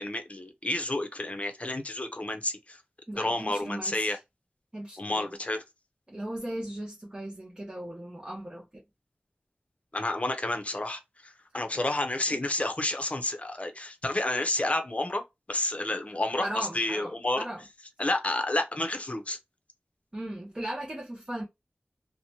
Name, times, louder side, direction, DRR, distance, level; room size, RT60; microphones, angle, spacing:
voice 1, 0.0-2.8 3.2-4.2 5.0-5.6 9.9-15.2 15.5-17.4 18.0-19.4, left 2 dB, 35° left, 0.6 m, -30 dB
voice 2, 3.1-4.2 4.7-5.4 6.1-8.8 12.3-12.4 16.4-17.6 20.1-21.4, right 1 dB, 20° right, 0.6 m, -37 dB
2.8 x 2.1 x 2.7 m
wide cardioid pair, 65°, 4 cm